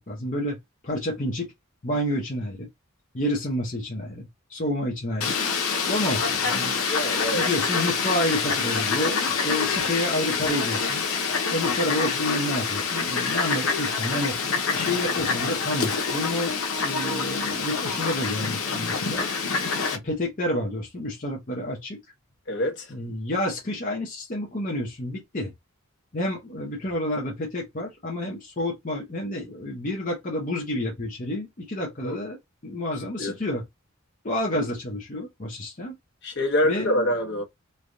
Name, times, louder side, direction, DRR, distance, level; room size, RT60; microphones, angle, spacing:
voice 1, 0.1-0.6 0.8-1.5 1.8-2.7 3.1-5.4 5.8-6.8 7.3-11.0 11.5-14.4 14.7-19.3 19.9-22.0 22.9-25.5 26.1-32.4 32.6-33.6 34.2-35.9 36.6-37.1, left 1 dB, 40° left, 0.7 m, -29 dB
Fowl, 5.2-20.0, left 5 dB, 90° left, 0.8 m, -26 dB
voice 2, 6.9-7.5 22.5-22.9 32.0-32.2 33.2-33.3 36.2-37.4, left 1 dB, 55° left, 1.1 m, -25 dB
3.3 x 2.3 x 2.6 m
head